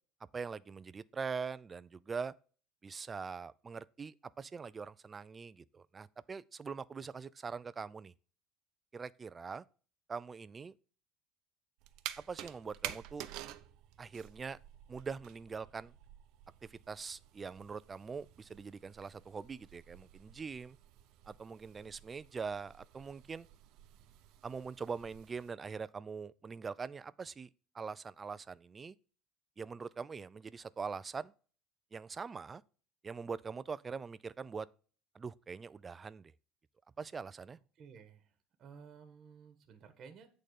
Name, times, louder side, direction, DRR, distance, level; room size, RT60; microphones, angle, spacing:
voice 1, 0.3-2.3 2.8-8.1 8.9-9.6 10.1-10.7 12.2-13.3 14.0-14.6 14.9-15.9 16.6-20.8 21.3-23.5 24.4-27.5 27.7-29.0 29.6-31.3 31.9-32.6 33.0-34.7 35.1-36.3 37.0-37.6, right 5 dB, 20° right, 0.3 m, -43 dB
sound 1, 11.8-25.5, right 13 dB, 60° right, 0.6 m, -50 dB
voice 2, 37.7-40.3, right 6 dB, 40° right, 1.3 m, -55 dB
8.6 x 3.8 x 6.6 m
cardioid pair, 145°, 0 cm